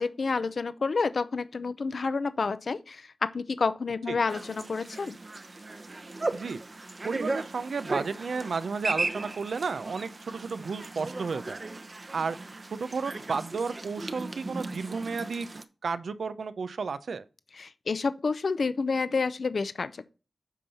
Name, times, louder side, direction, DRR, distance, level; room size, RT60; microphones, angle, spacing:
voice 1, 0.0-5.2 17.6-20.0, left 4 dB, 70° left, 0.6 m, -29 dB
sound 1, 4.3-15.6, right 2 dB, 40° right, 0.9 m, -36 dB
voice 2, 6.3-6.6 7.0-11.6 12.1-12.4 12.7-15.5 15.8-17.2, right 5 dB, 85° right, 0.6 m, -32 dB
8.3 x 5.5 x 4.2 m
wide cardioid pair, 80°, 0 cm